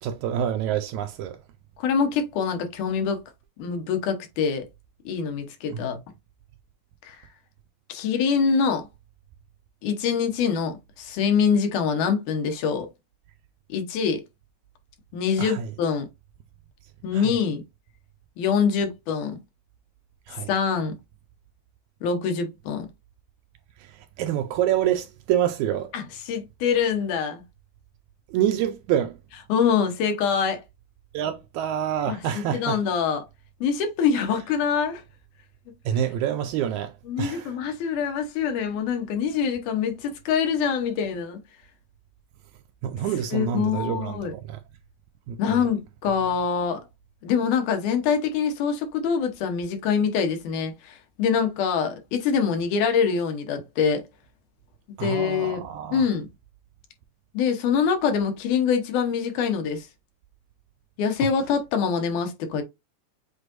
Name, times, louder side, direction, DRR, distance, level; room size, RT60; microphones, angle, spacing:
voice 1, 0.0-1.4 5.7-6.0 15.4-15.7 17.1-17.4 20.3-20.5 23.8-25.9 28.3-29.2 31.1-32.8 35.9-37.5 42.8-44.6 45.3-45.7 55.0-56.0 61.2-61.3, right 10 dB, 80° right, 1.9 m, -27 dB
voice 2, 1.8-3.2 3.6-4.7 5.1-6.0 7.0-7.2 7.9-8.9 9.8-12.9 13.7-14.2 15.1-16.1 17.0-17.6 18.4-19.4 20.5-20.9 22.0-22.9 25.9-27.4 29.5-30.6 32.1-33.2 33.6-35.0 37.1-41.4 43.3-44.3 45.4-46.8 47.2-54.0 55.0-55.6 55.9-56.3 57.3-59.9 61.0-62.6, left 6 dB, 90° left, 2.5 m, -24 dB
7.8 x 2.6 x 2.5 m
omnidirectional pair, 3.5 m